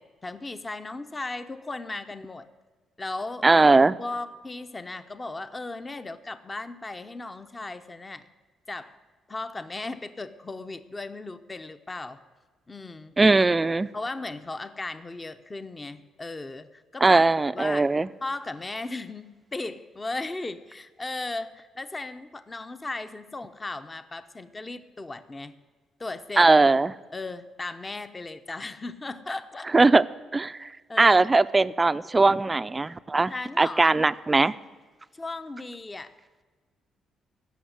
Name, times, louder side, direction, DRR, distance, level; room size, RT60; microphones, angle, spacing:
voice 1, 0.0-2.5 3.0-3.5 4.0-8.3 8.7-9.0 9.3-12.2 12.7-13.2 13.9-17.3 17.5-17.9 18.2-25.5 26.0-26.5 27.1-29.7 30.9-31.2 33.3-34.1 35.1-36.2, left 2 dB, 25° left, 10 dB, 0.7 m, -36 dB
voice 2, 3.4-4.0 13.2-13.9 17.0-18.1 26.4-26.9 29.7-30.1 30.3-30.7 31.0-34.5, right 3 dB, 20° right, 14 dB, 0.4 m, -20 dB
16.0 x 6.4 x 9.4 m, 1.4 s
cardioid pair, 90°, 0 cm